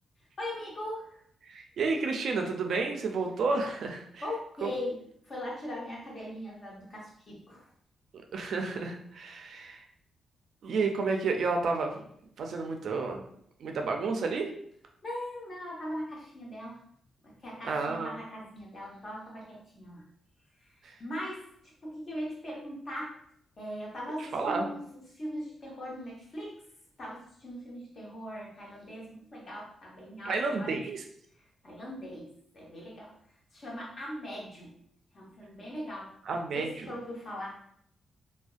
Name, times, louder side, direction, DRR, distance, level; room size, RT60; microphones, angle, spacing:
voice 1, 0.4-1.1 4.2-5.0 5.3-7.6 15.0-16.8 17.4-20.0 21.0-21.4 21.8-23.2 23.6-26.6 27.0-30.7 31.6-33.1 33.5-34.7 35.1-36.1 36.5-37.5, equal, 45° left, -4 dB, 0.9 m, -40 dB
voice 2, 1.5-4.2 4.6-4.7 8.3-9.8 10.6-12.0 12.4-13.2 13.6-14.5 17.6-18.1 20.8-20.9 24.2-24.7 30.2-31.0 36.3-37.0, right 4 dB, 65° right, 3 dB, 0.3 m, -31 dB
2.5 x 2.1 x 2.4 m, 0.68 s
cardioid pair, 95°, 0 cm